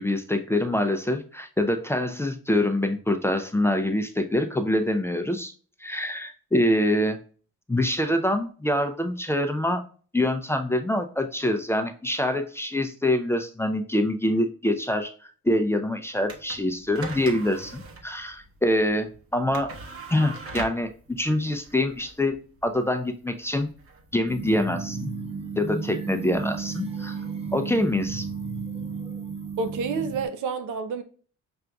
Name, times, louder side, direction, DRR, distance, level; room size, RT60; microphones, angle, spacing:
voice 1, 0.0-5.5 5.8-7.2 7.7-9.8 10.1-15.1 15.4-19.7 20.1-23.7 24.1-25.1 25.6-27.2 27.5-28.3, left 1 dB, 10° left, 7 dB, 0.4 m, -25 dB
sound 1, 16.2-24.7, right 3 dB, 45° right, 0.9 m, -42 dB
sound 2, 24.3-30.3, right 5 dB, 20° right, 1.0 m, -33 dB
voice 2, 29.6-31.0, right 4 dB, 85° right, 8 dB, 0.6 m, -29 dB
5.8 x 2.5 x 2.2 m, 0.41 s
cardioid pair, 90°, 30 cm